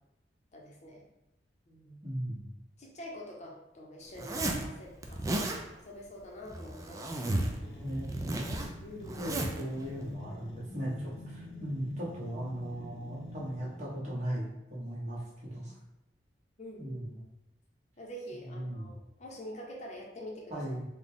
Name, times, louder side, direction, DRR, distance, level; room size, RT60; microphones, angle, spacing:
voice 1, 0.5-1.1 1.7-2.0 2.8-7.3 8.8-9.4 16.6-17.1 18.0-20.6, equal, 40° left, -1 dB, 0.7 m, -46 dB
voice 2, 2.0-2.5 7.8-8.5 9.1-15.7 16.8-17.2 18.4-18.9 20.5-20.8, equal, 40° right, -6 dB, 1.2 m, -37 dB
Zipper (clothing), 4.2-4.7 5.0-5.6 6.5-7.6 7.9-9.6, right 1 dB, 20° right, 0.3 m, -34 dB
sound 1, 7.3-14.0, equal, 85° left, 0.9 m, -47 dB
3.9 x 2.3 x 3.5 m, 0.88 s
head